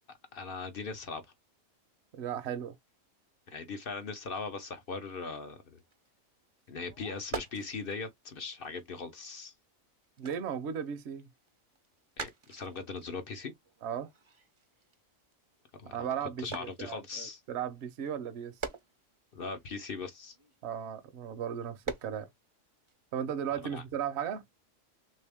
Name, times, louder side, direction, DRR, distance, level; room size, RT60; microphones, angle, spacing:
voice 1, 0.3-1.2 3.5-5.8 6.7-9.5 12.2-13.5 15.8-17.4 19.3-20.4 23.5-23.8, left 4 dB, 55° left, 0.7 m, -40 dB
voice 2, 2.1-2.7 10.2-11.3 13.8-14.1 15.9-18.5 20.6-22.3 23.1-24.5, right 8 dB, 60° right, 0.9 m, -36 dB
sound 1, 5.8-6.1 6.5-9.7 10.0-15.9 16.4-21.1 21.6-22.3 22.7-22.9, right 4 dB, 40° right, 0.4 m, -45 dB
3.4 x 2.7 x 3.4 m
omnidirectional pair, 1.4 m